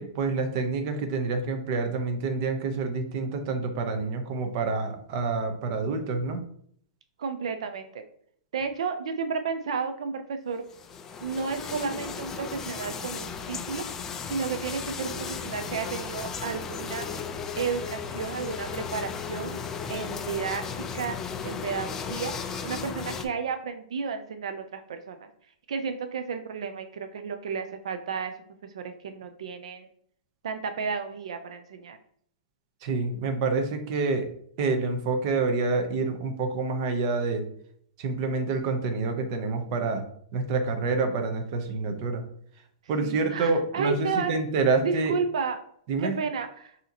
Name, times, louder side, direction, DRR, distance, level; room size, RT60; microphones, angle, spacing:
voice 1, 0.0-6.4 32.8-34.3 34.6-37.4 38.0-40.0 40.3-42.2 42.9-45.1 45.9-46.2, right 3 dB, 40° right, 6 dB, 0.8 m, -27 dB
voice 2, 7.2-8.0 8.5-10.6 11.2-13.8 14.3-17.1 17.6-19.6 19.9-21.2 21.4-25.2 25.7-28.3 28.7-29.9 30.4-32.0 43.0-44.4 44.8-45.6 46.0-46.7, right 5 dB, 80° right, 8 dB, 0.5 m, -32 dB
sound 1, 10.7-23.2, left 6 dB, 15° left, 0.3 m, -35 dB
6.3 x 2.8 x 2.9 m, 0.63 s
hypercardioid pair, 160°, 3 cm